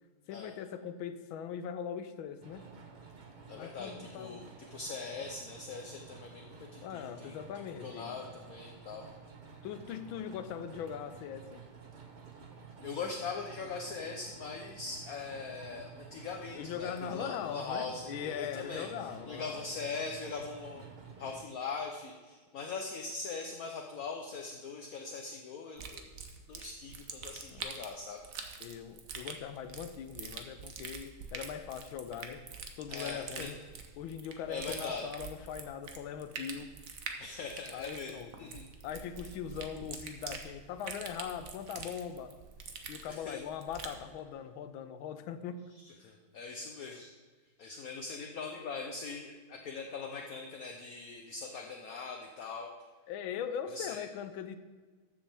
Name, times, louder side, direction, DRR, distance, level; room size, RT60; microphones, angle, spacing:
voice 1, 0.3-2.6 3.5-4.4 6.8-8.1 9.6-11.6 16.5-19.7 27.5-27.7 28.6-32.4 32.8-33.6 34.0-36.7 37.7-38.3 38.8-42.4 42.9-45.7 53.1-54.6, left 8 dB, 80° left, 10 dB, 1.4 m, -41 dB
sound 1, 2.4-21.4, right 5 dB, 85° right, 0.4 m, -51 dB
voice 2, 3.5-7.4 7.8-9.1 12.8-20.8 21.2-26.1 26.5-28.2 32.9-33.5 34.5-35.1 37.2-38.6 43.1-43.4 45.8-47.1 47.6-52.7 53.7-54.0, left 4 dB, 60° left, 2 dB, 0.9 m, -41 dB
sound 2, 25.8-44.0, right 5 dB, 55° right, 1.0 m, -45 dB
13.0 x 7.1 x 3.4 m, 1.4 s
omnidirectional pair, 2.3 m